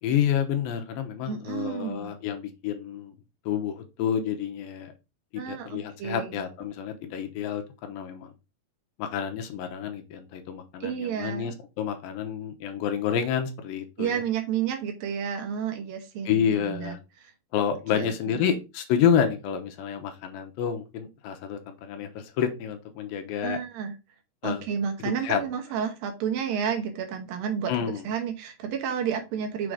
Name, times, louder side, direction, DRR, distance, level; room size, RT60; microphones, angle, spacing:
voice 1, 0.0-3.1 3.5-4.9 5.3-8.3 9.0-14.2 16.2-17.0 17.5-23.6 24.4-24.7 25.0-25.4 27.7-28.0, left 8 dB, 80° left, 6 dB, 2.6 m, -29 dB
voice 2, 1.3-2.1 5.4-6.4 10.8-11.5 14.0-17.0 17.2-17.3 17.9-18.4 23.4-23.9 24.4-29.7, right 7 dB, 75° right, 4 dB, 2.8 m, -31 dB
6.8 x 3.8 x 4.9 m, 0.27 s
omnidirectional pair, 4.1 m